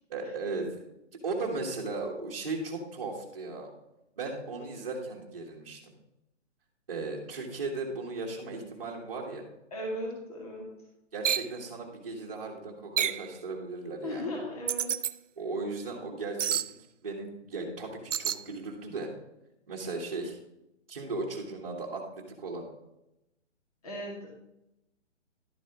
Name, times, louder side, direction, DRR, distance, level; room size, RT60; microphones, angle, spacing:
voice 1, 0.1-0.9 1.2-3.7 4.2-5.9 6.9-9.4 11.1-14.3 15.4-16.6 17.0-19.1 19.7-20.4 20.9-22.7, right 3 dB, 30° right, -6 dB, 1.4 m, -36 dB
voice 2, 9.7-10.7 14.0-14.9 23.8-24.3, left 1 dB, 30° left, -2 dB, 2.2 m, -36 dB
sound 1, 11.2-11.5 13.0-13.3 14.7-15.1 16.4-16.7 18.1-18.4, right 9 dB, 80° right, 0.6 m, -28 dB
11.5 x 8.8 x 3.0 m, 0.87 s
hypercardioid pair, 180°, 36 cm